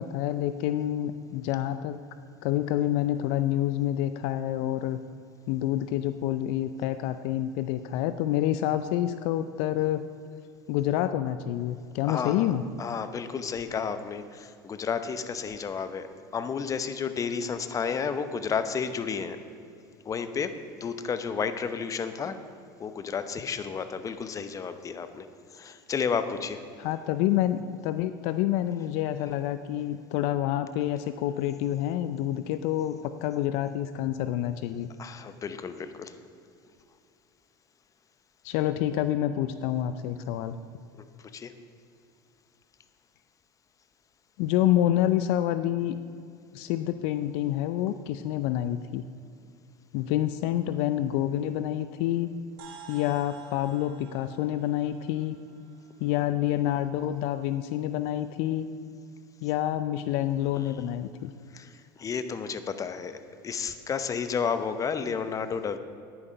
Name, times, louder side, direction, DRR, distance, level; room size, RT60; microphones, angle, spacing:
voice 1, 0.0-2.0 2.4-5.0 5.5-10.0 10.7-12.6 26.8-34.9 38.4-40.6 44.4-46.0 46.5-49.1 49.9-52.3 52.9-55.4 56.0-58.7 59.4-61.3, left 12 dB, 65° left, 11 dB, 0.4 m, -28 dB
voice 2, 12.0-12.5 12.8-16.1 16.3-19.4 20.0-22.4 22.8-25.3 25.5-26.6 35.0-36.1 41.0-41.1 41.3-41.5 61.5-65.8, left 6 dB, 30° left, 10 dB, 0.8 m, -32 dB
sound 1, 52.6-57.2, right 5 dB, 75° right, 1.8 m, -52 dB
10.0 x 10.0 x 5.3 m, 2.5 s
hypercardioid pair, 95°, 12 cm